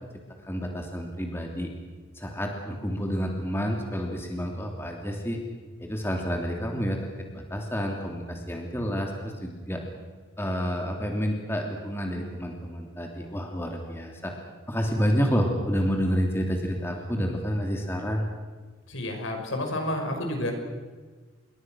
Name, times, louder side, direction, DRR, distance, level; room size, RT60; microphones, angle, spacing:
voice 1, 0.5-1.7 2.1-5.4 5.8-9.8 10.4-14.3 14.7-18.3, equal, 10° left, 1 dB, 3.0 m, -29 dB
voice 2, 18.9-20.5, left 1 dB, 80° left, 3 dB, 5.7 m, -30 dB
28.0 x 22.5 x 6.4 m, 1.4 s
head